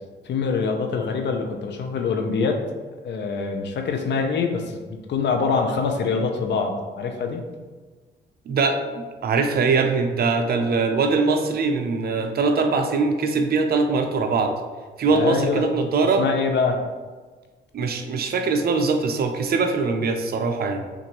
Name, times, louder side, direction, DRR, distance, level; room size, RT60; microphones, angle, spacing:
voice 1, 0.2-2.6 3.0-4.8 5.1-7.4 15.1-15.6 16.2-16.8, left 5 dB, 60° left, 4 dB, 0.7 m, -24 dB
voice 2, 8.5-14.5 15.0-16.2 17.7-20.8, right 4 dB, 50° right, 5 dB, 0.6 m, -22 dB
6.0 x 2.6 x 3.0 m, 1.4 s
cardioid pair, 90°, 20 cm